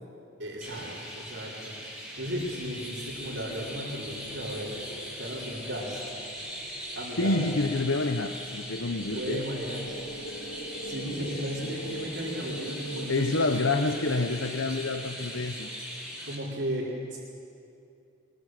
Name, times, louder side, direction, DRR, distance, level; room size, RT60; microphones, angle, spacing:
voice 1, 0.4-4.7 5.2-6.0 6.9-7.5 8.9-9.8 10.8-13.5 14.0-14.3 16.2-17.2, equal, 75° right, -9 dB, 4.5 m, -35 dB
Chirp tweet, 0.6-16.4, equal, 5° right, 5.2 m, -40 dB
sound 1, 2.1-16.0, right 1 dB, 65° left, 2.4 m, -44 dB
voice 2, 7.2-9.4 11.1-11.8 13.1-15.7, left 2 dB, 90° left, 6 dB, 1.0 m, -28 dB
23.0 x 22.5 x 7.7 m, 2.6 s
head